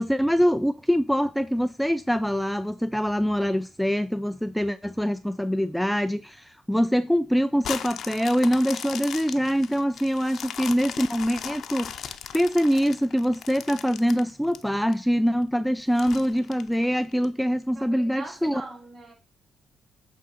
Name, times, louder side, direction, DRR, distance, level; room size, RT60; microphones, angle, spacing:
voice 1, 0.0-18.6, equal, ahead, 0.4 m, -24 dB
sound 1, 7.6-14.9 15.4-15.5 16.0-17.2 17.8-17.9, left 8 dB, 65° left, 0.7 m, -37 dB
voice 2, 17.7-19.1, right 3 dB, 45° right, 4.1 m, -41 dB
8.6 x 3.7 x 5.4 m
cardioid pair, 90°, 0 cm